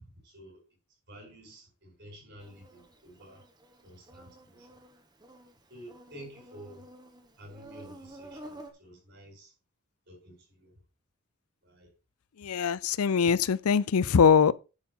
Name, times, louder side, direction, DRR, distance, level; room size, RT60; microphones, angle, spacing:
voice 1, 0.2-0.6 1.1-3.4 3.8-4.8 5.7-6.9 7.4-9.5 10.1-10.7 11.6-11.9, equal, 50° right, 5.1 m, -50 dB
Insect, 2.4-8.7, right 1 dB, 20° right, 1.3 m, -51 dB
voice 2, 12.4-14.5, left 6 dB, 90° left, 0.5 m, -22 dB
10.5 x 4.5 x 5.6 m
head